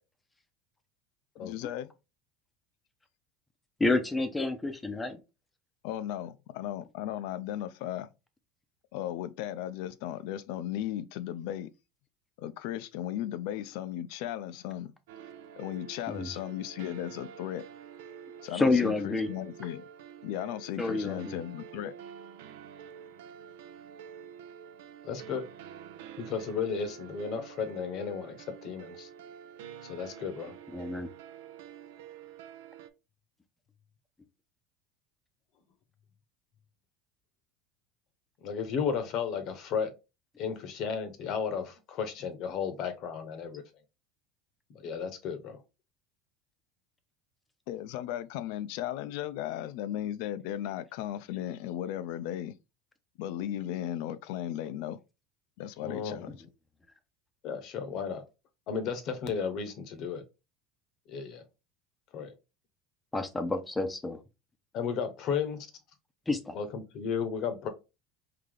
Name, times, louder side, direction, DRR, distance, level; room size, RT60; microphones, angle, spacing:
voice 1, 1.4-1.9 5.8-8.1 8.9-11.7 12.4-14.9 15.6-17.6 18.4-19.8 20.2-21.9 47.7-52.5 53.2-55.0 55.6-56.3, left 12 dB, 70° left, 0.4 m, -36 dB
voice 2, 3.8-5.2 16.1-16.3 18.5-19.3 20.8-21.4 30.7-31.1 63.1-64.2 66.3-66.6, left 3 dB, 10° left, 0.6 m, -29 dB
sound 1, 15.1-32.9, right 8 dB, 85° right, 0.5 m, -48 dB
voice 3, 25.0-25.4 26.2-28.4 28.6-29.1 29.8-30.5 38.4-39.9 40.4-43.6 44.7-45.6 55.8-56.3 57.4-58.2 58.7-60.2 61.1-61.4 62.1-62.3 64.7-65.7 66.5-67.7, left 6 dB, 50° left, 0.8 m, -34 dB
3.8 x 2.8 x 3.2 m
supercardioid pair, 135°, 0 cm